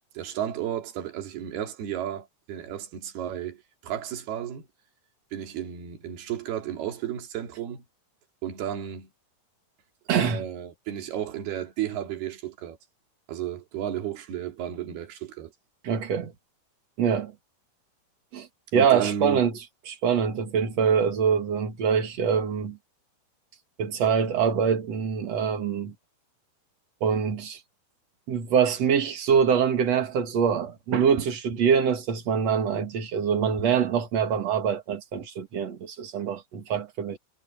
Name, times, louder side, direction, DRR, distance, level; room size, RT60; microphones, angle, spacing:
voice 1, 0.1-4.7 5.3-7.8 8.4-9.1 10.2-12.8 13.3-15.5 18.7-19.4, right 10 dB, 75° right, 4.5 m, -33 dB
voice 2, 10.1-10.4 15.8-16.3 17.0-17.3 18.3-18.5 18.7-19.6 19.9-22.8 23.8-25.9 27.0-27.6 28.3-37.2, right 7 dB, 50° right, 2.7 m, -24 dB
omnidirectional pair, 4.6 m